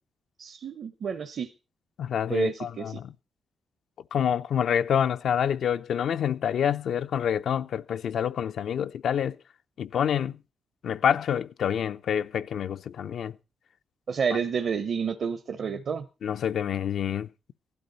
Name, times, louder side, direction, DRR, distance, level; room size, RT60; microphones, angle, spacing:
voice 1, 0.4-1.5 2.3-3.0 14.1-16.0, right 6 dB, 55° right, 0.8 m, -30 dB
voice 2, 2.0-3.1 4.1-9.4 9.8-10.4 10.8-13.4 16.2-17.3, left 8 dB, 75° left, 0.6 m, -27 dB
16.0 x 12.0 x 4.1 m
cardioid pair, 115°, 0 cm